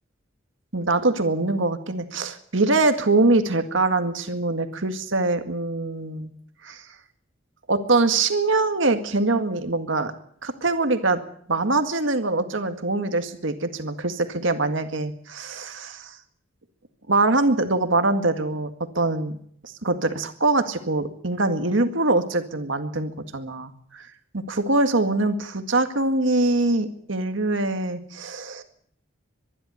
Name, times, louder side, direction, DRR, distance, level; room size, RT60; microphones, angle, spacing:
voice 1, 0.7-6.3 6.6-6.8 7.7-10.1 10.4-11.2 11.5-16.2 17.1-18.7 19.0-19.4 19.6-24.1 24.3-28.6, right 2 dB, 75° right, 8 dB, 1.9 m, -23 dB
23.5 x 11.5 x 9.8 m, 0.66 s
head